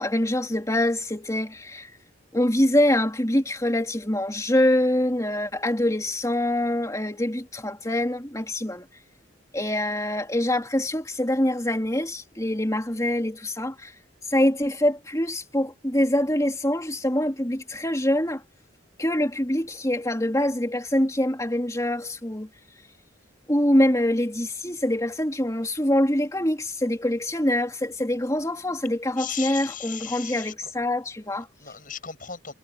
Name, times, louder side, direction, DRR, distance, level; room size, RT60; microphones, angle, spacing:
voice 1, 0.0-1.9 2.3-8.8 9.5-13.9 14.3-18.4 19.0-22.5 23.5-31.5, left 1 dB, 15° left, 3.3 m, -24 dB
voice 2, 29.2-30.7 31.6-32.5, left 8 dB, 45° left, 8.0 m, -36 dB
head